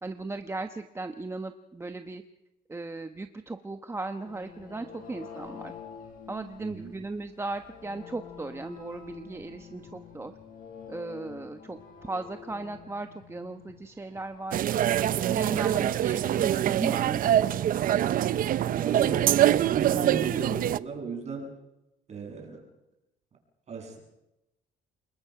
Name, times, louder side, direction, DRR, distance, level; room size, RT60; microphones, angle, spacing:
voice 1, 0.0-2.2 2.7-5.7 6.3-10.3 10.9-14.7 15.3-17.5, right 3 dB, 15° right, 7 dB, 1.1 m, -37 dB
sound 1, 4.2-20.2, left 7 dB, 55° left, 6.7 m, -48 dB
voice 2, 6.6-6.9 18.7-21.5 22.1-22.6 23.7-24.0, right 5 dB, 40° right, 1 dB, 7.4 m, -36 dB
sound 2, 14.5-20.8, right 11 dB, 55° right, 0.7 m, -24 dB
27.5 x 21.0 x 5.9 m, 0.92 s
cardioid pair, 110°, 17 cm